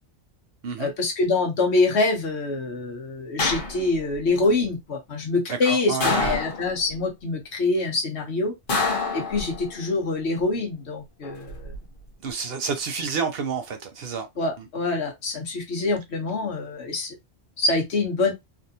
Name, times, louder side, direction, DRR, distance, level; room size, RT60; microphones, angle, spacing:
voice 1, 0.8-8.5 9.1-11.7 14.4-17.1 17.6-18.3, left 3 dB, 70° left, 1.3 m, -25 dB
sound 1, 3.4-4.2 6.0-6.9 8.7-9.8 11.2-11.8, left 3 dB, 50° left, 1.0 m, -27 dB
voice 2, 5.5-6.4 12.2-14.3 14.6-14.7, right 6 dB, 60° right, 0.9 m, -29 dB
3.5 x 2.5 x 2.7 m
omnidirectional pair, 1.2 m